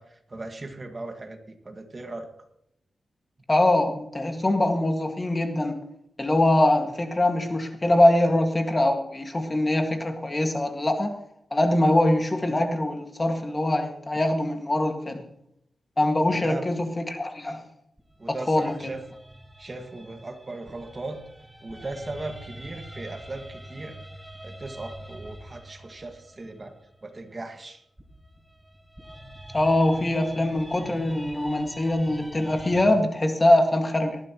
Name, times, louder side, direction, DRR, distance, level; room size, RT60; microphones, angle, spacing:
voice 1, 0.0-2.3 16.3-16.6 18.2-19.0 19.6-21.2 21.6-24.0 24.4-26.8 27.0-27.8, right 2 dB, 30° right, 5 dB, 1.7 m, -38 dB
voice 2, 3.5-5.8 6.2-11.2 11.5-15.2 16.0-17.6 18.3-18.7 29.5-34.2, left 1 dB, 25° left, 4 dB, 1.8 m, -23 dB
sound 1, 18.0-27.1 28.0-32.9, right 1 dB, 5° right, 1.8 m, -44 dB
19.5 x 14.0 x 3.0 m, 0.76 s
wide cardioid pair, 105°, 0 cm